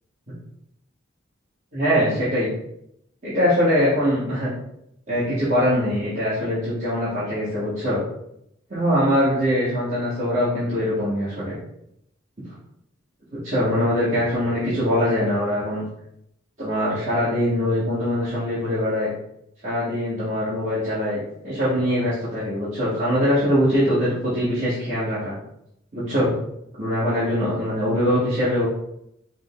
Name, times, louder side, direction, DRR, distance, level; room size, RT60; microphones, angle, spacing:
voice 1, 1.7-2.5 3.2-4.5 5.1-8.0 8.7-11.5 13.4-15.8 16.6-19.1 19.6-25.3 25.9-26.3 26.8-28.7, equal, 35° right, -12 dB, 1.3 m, -22 dB
5.1 x 2.1 x 3.6 m, 0.77 s
head